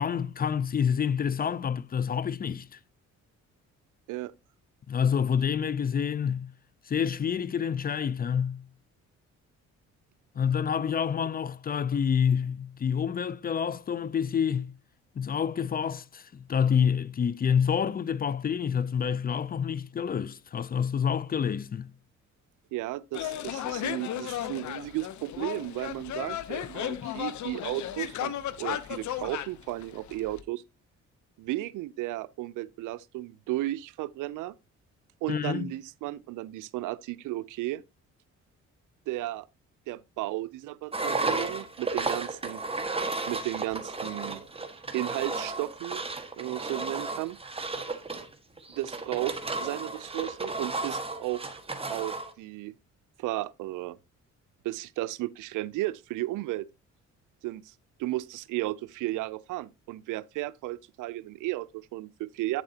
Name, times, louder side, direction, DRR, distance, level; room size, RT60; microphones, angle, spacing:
voice 1, 0.0-2.8 4.9-6.5 6.9-8.6 10.4-14.7 15.2-21.9 35.3-35.7, left 7 dB, 30° left, 0.4 m, -28 dB
voice 2, 22.7-28.3 28.6-30.6 31.4-34.5 35.2-37.8 39.1-39.5 39.9-42.6 43.3-44.4 44.9-46.0 46.4-47.4 48.8-51.4 51.9-52.7 53.2-54.0 54.6-56.6 57.4-57.7 58.0-62.6, right 16 dB, 85° right, 0.5 m, -34 dB
sound 1, 23.1-30.4, left 11 dB, 70° left, 0.8 m, -35 dB
Engine, 40.9-52.3, right 3 dB, 20° right, 1.5 m, -33 dB
8.8 x 7.6 x 2.8 m
cardioid pair, 90°, 30 cm